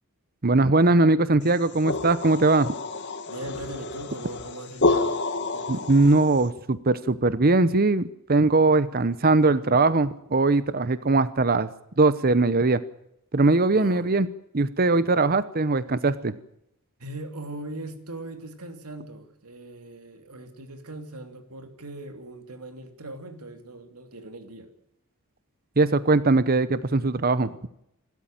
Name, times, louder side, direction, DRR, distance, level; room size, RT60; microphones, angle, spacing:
voice 1, 0.4-2.7 5.7-11.7 12.0-12.8 13.3-14.3 14.5-16.3 25.8-27.5, right 3 dB, 45° right, 15 dB, 0.9 m, -21 dB
sound 1, 1.5-6.4, left 3 dB, 50° left, 2.0 m, -29 dB
voice 2, 3.3-6.0 13.7-14.1 17.0-24.7, right 2 dB, 85° right, 7 dB, 3.0 m, -40 dB
28.0 x 13.0 x 9.1 m, 0.78 s
head